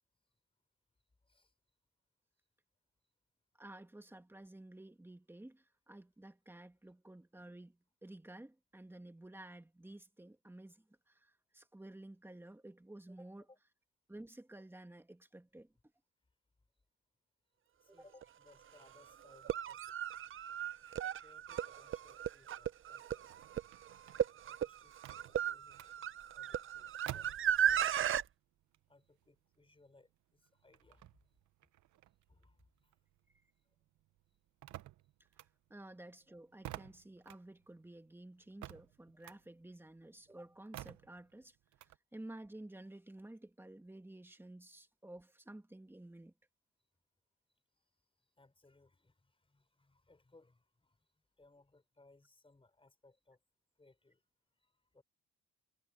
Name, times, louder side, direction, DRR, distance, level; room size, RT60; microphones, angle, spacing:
voice 1, 3.6-13.5 14.1-15.7 17.9-18.0 35.7-41.6 42.1-46.3, right 1 dB, 5° right, 2.0 m, -53 dB
voice 2, 17.8-20.0 21.0-23.4 24.4-25.9 26.3-28.1 28.9-31.1 32.3-32.6 48.4-51.1 51.4-53.4 53.8-54.2 54.6-55.0, left 2 dB, 20° left, 5.7 m, -66 dB
sound 1, 18.2-18.3 19.3-28.2, right 9 dB, 45° right, 0.6 m, -35 dB
sound 2, 23.2-28.3 28.6-33.4 33.7-42.0, right 14 dB, 75° right, 0.9 m, -53 dB
cardioid pair, 90°, 30 cm